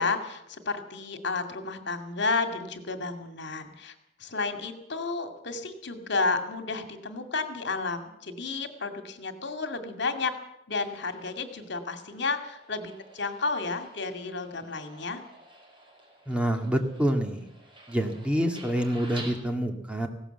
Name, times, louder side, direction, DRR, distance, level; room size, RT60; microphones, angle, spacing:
voice 1, 0.0-3.9 4.2-10.3 10.7-15.2, left 3 dB, 65° left, 7 dB, 2.2 m, -31 dB
sound 1, 10.7-19.3, right 2 dB, 25° right, 4.8 m, -50 dB
voice 2, 16.3-17.5 17.9-20.1, equal, 5° right, 4 dB, 2.2 m, -27 dB
19.0 x 16.5 x 8.0 m, 0.83 s
head